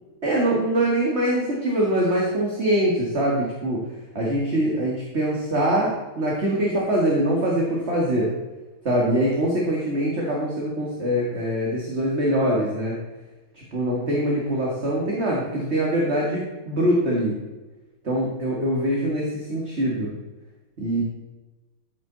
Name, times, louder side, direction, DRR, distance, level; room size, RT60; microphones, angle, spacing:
voice 1, 0.2-3.8 4.1-8.3 8.8-13.0 13.6-17.4 18.0-20.1 20.8-21.0, right 1 dB, 30° right, -3 dB, 2.2 m, -23 dB
13.0 x 9.0 x 4.1 m, 1.2 s
omnidirectional pair, 2.4 m